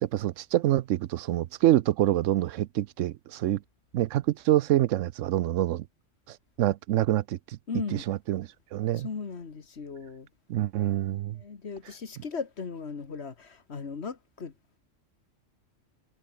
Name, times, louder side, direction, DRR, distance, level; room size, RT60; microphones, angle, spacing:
voice 1, 0.0-3.6 3.9-5.9 6.3-7.6 7.9-9.1 10.5-11.4, right 13 dB, 85° right, 0.9 m, -26 dB
voice 2, 7.7-8.0 9.0-10.3 11.4-14.5, left 5 dB, 60° left, 1.9 m, -37 dB
omnidirectional pair, 1.3 m